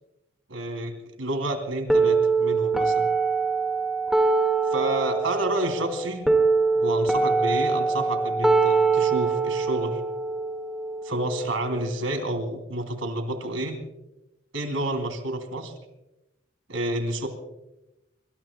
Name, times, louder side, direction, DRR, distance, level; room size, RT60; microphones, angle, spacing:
voice 1, 0.5-3.1 4.7-6.3 6.7-10.0 11.0-13.8 14.5-15.7 16.7-17.3, right 1 dB, 90° right, 6 dB, 2.9 m, -29 dB
sound 1, 1.9-11.9, right 4 dB, ahead, 1.8 m, -23 dB
25.0 x 23.0 x 2.3 m, 0.94 s
head